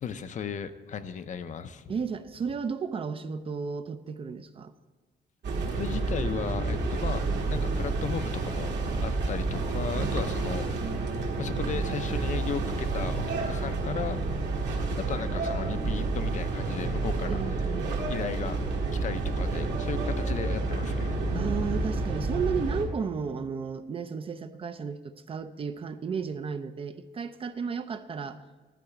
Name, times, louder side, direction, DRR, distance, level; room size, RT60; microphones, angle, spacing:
voice 1, 0.0-1.9 5.7-8.7 9.0-10.9 11.4-14.2 15.0-17.4 18.1-18.6 18.9-21.8, left 7 dB, 40° left, 11 dB, 0.5 m, -36 dB
voice 2, 1.9-4.7 10.4-11.0 17.3-17.9 21.3-28.4, right 6 dB, 30° right, 11 dB, 0.4 m, -34 dB
sound 1, 5.4-22.8, right 3 dB, 75° right, 1.7 m, -29 dB
12.0 x 4.7 x 7.9 m, 1.3 s
cardioid pair, 170°, 19 cm